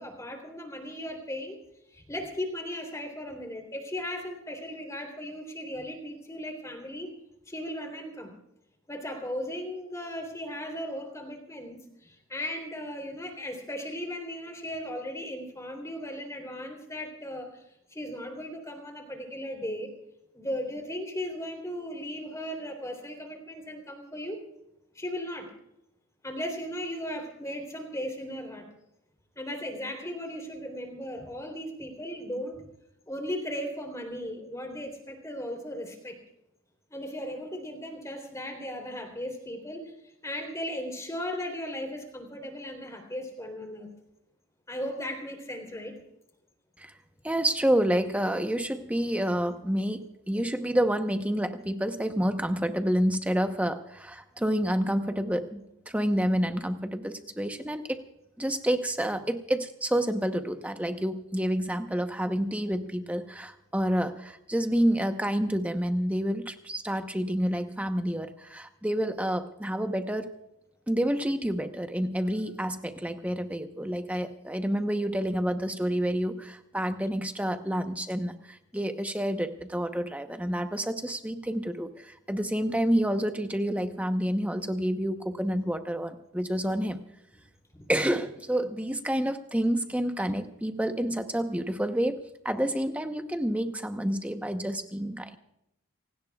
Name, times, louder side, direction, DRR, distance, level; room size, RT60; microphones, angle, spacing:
voice 1, 0.0-1.6 1.9-7.1 7.5-8.3 8.9-17.6 17.9-19.9 20.3-24.4 24.9-25.5 26.2-28.7 29.3-32.6 33.1-36.2 36.9-43.9 44.7-45.9 87.7-87.8, equal, 15° left, 3 dB, 3.4 m, -37 dB
voice 2, 47.2-58.0 58.4-70.3 70.9-87.0 87.9-95.4, equal, 5° right, 6 dB, 0.9 m, -29 dB
27.5 x 18.0 x 2.4 m, 0.84 s
head